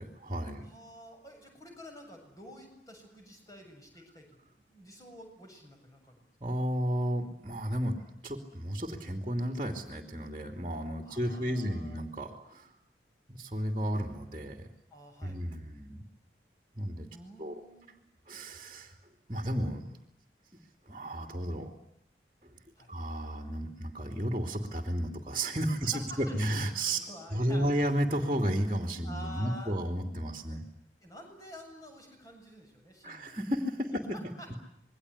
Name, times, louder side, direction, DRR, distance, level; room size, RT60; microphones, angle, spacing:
voice 1, 0.0-0.7 6.4-8.0 8.2-12.7 13.3-14.7 15.2-16.0 16.8-17.1 17.4-17.6 18.3-18.9 19.3-19.9 20.9-21.7 22.9-27.0 27.3-30.6 33.0-34.2 34.5-34.6, right 1 dB, 25° right, 4 dB, 2.9 m, -33 dB
voice 2, 0.7-6.2 11.0-12.0 14.9-15.4 17.1-18.0 22.8-22.9 25.8-26.4 26.8-27.8 29.0-29.8 31.0-33.4 34.1-34.6, left 1 dB, 20° left, 3 dB, 7.4 m, -49 dB
27.5 x 22.0 x 9.8 m, 0.76 s
head